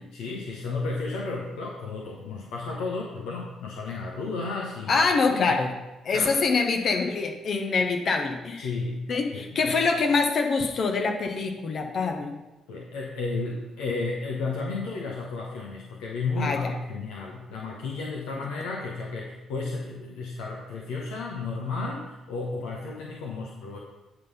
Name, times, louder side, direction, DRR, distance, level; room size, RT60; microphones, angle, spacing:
voice 1, 0.0-5.0 5.3-5.6 6.1-6.3 8.6-9.8 12.7-23.8, left 3 dB, 65° left, -1 dB, 0.9 m, -33 dB
voice 2, 4.9-5.7 6.0-8.7 9.1-12.4 16.4-16.7, left 4 dB, 50° left, 3 dB, 1.1 m, -25 dB
9.2 x 4.0 x 5.7 m, 1.0 s
figure-of-eight pair, 40°, 0 cm